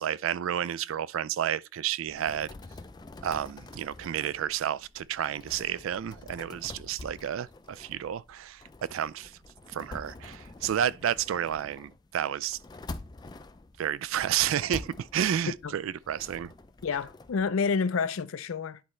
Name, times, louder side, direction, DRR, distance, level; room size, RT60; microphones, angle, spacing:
voice 1, 0.0-2.5 3.2-8.6 8.9-9.3 9.7-12.6 13.8-16.5, right 9 dB, 75° right, 0.3 m, -31 dB
sound 1, 2.1-17.5, left 2 dB, 20° left, 0.3 m, -46 dB
voice 2, 16.8-18.8, left 5 dB, 80° left, 0.5 m, -29 dB
10.0 x 4.3 x 3.1 m
head